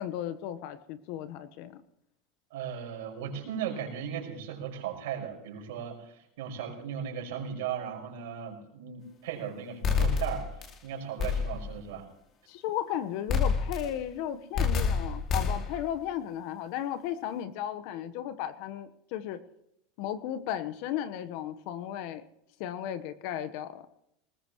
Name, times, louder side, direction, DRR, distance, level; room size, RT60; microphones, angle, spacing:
voice 1, 0.0-1.8 12.5-19.4 20.0-22.2 22.6-23.9, left 10 dB, 65° left, 11 dB, 1.2 m, -35 dB
voice 2, 2.5-10.5 10.8-12.1, right 8 dB, 75° right, 0 dB, 5.5 m, -37 dB
sound 1, 9.8-10.7 11.2-11.7 13.3-14.0 14.5-15.8, left 5 dB, 45° left, 2.4 m, -28 dB
20.0 x 19.5 x 3.2 m, 0.81 s
hypercardioid pair, 95°, 0 cm